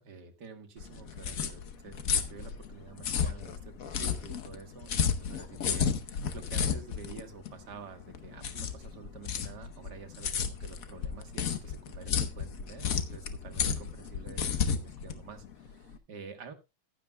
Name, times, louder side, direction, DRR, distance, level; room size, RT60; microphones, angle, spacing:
voice 1, 0.0-16.5, right 5 dB, 55° right, 7 dB, 2.0 m, -49 dB
sound 1, 0.8-16.0, left 7 dB, 55° left, 1.1 m, -32 dB
15.0 x 11.0 x 2.2 m, 0.26 s
omnidirectional pair, 2.2 m